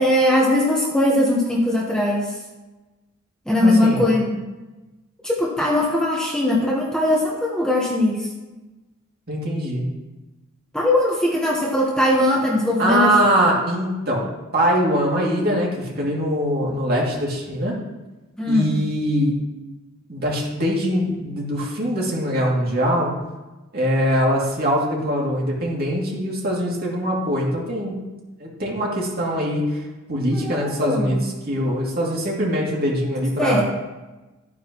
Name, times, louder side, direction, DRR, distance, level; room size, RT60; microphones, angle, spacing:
voice 1, 0.0-2.3 3.5-4.4 5.2-8.3 10.7-13.1 18.4-18.7 30.3-31.2 33.4-33.6, left 1 dB, 5° left, -3 dB, 1.2 m, -20 dB
voice 2, 3.6-4.1 9.3-9.8 12.8-14.3 14.5-17.8 18.4-19.3 20.1-23.1 23.7-28.0 28.4-29.8 30.1-31.2 31.5-33.6, equal, 45° right, -3 dB, 2.6 m, -22 dB
12.5 x 9.4 x 3.1 m, 1.1 s
head